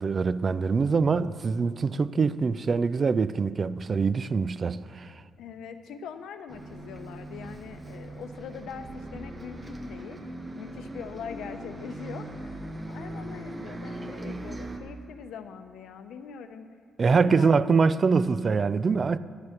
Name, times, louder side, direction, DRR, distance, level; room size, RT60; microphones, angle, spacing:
voice 1, 0.0-5.1 17.0-19.2, right 5 dB, 40° right, 0.4 m, -24 dB
voice 2, 5.4-10.2 10.6-16.7 17.1-17.6, left 7 dB, 80° left, 0.7 m, -42 dB
Bus, 6.5-14.8, right 1 dB, 25° right, 1.1 m, -40 dB
9.6 x 8.3 x 6.5 m
cardioid pair, 90°, 0 cm